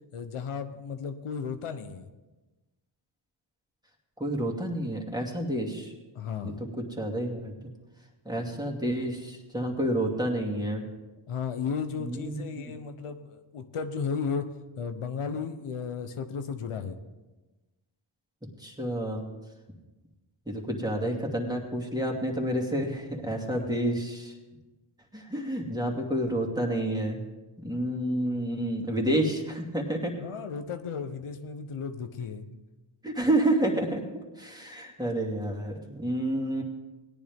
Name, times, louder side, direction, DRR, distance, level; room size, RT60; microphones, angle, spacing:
voice 1, 0.1-2.1 6.1-6.6 11.3-14.5 14.8-17.0 23.3-23.7 30.2-32.5, left 6 dB, 85° left, 8 dB, 0.9 m, -34 dB
voice 2, 4.2-5.9 6.4-7.5 8.3-10.9 12.0-12.4 18.6-19.2 20.5-24.3 25.1-27.2 27.6-30.2 33.0-34.0 34.4-36.6, right 1 dB, 10° right, -1 dB, 2.4 m, -29 dB
17.0 x 10.0 x 3.6 m, 1.1 s
cardioid pair, 45°, 50 cm